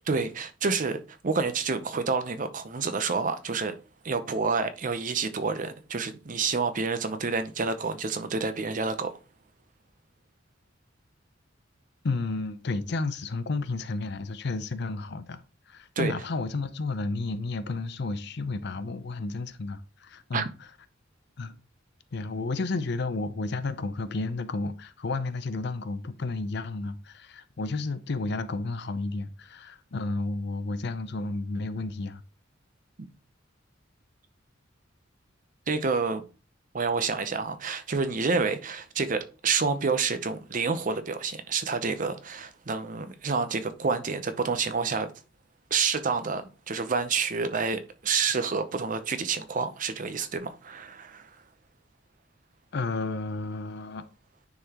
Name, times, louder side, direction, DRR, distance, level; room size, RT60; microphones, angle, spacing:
voice 1, 0.1-3.7 4.0-9.1 16.0-16.1 20.3-20.5 35.7-36.2 36.7-45.1 45.7-51.3, right 4 dB, 40° right, 0.6 m, -28 dB
voice 2, 12.0-15.4 15.7-20.5 21.4-21.5 22.1-32.2 52.7-54.1, left 3 dB, 60° left, 0.5 m, -32 dB
9.4 x 3.9 x 2.9 m
head